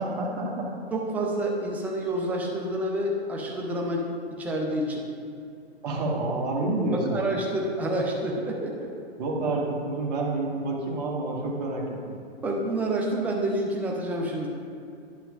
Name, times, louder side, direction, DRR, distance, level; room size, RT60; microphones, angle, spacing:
voice 1, 0.0-0.7 5.8-7.2 9.2-11.8, right 2 dB, 40° right, -2 dB, 1.5 m, -28 dB
voice 2, 0.9-4.1 4.4-5.0 6.9-8.9 12.4-14.5, right 1 dB, 5° right, -1 dB, 0.4 m, -28 dB
11.5 x 6.1 x 2.4 m, 2.6 s
hypercardioid pair, 135°, 32 cm